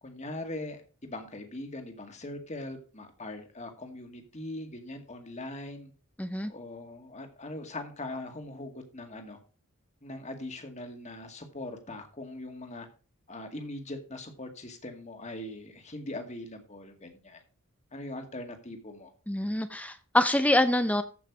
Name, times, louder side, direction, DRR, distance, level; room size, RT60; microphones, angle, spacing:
voice 1, 0.0-5.9 6.4-9.4 10.0-12.9 13.3-17.4 17.9-19.1, left 1 dB, 35° left, 5 dB, 2.1 m, -41 dB
voice 2, 6.2-6.5 19.3-21.0, left 1 dB, 5° left, 10 dB, 0.6 m, -25 dB
14.0 x 5.9 x 4.7 m, 0.37 s
head